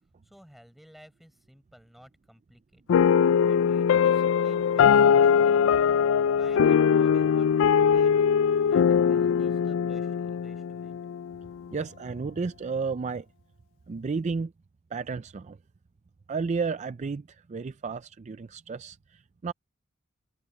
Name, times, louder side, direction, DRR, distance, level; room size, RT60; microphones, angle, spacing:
voice 1, 0.2-5.9 6.3-11.0, equal, ahead, 7.3 m, -55 dB
sound 1, 2.9-11.4, left 7 dB, 70° left, 0.3 m, -21 dB
voice 2, 11.7-13.3 13.9-14.5 14.9-15.6 16.3-19.5, right 4 dB, 35° right, 0.4 m, -32 dB
head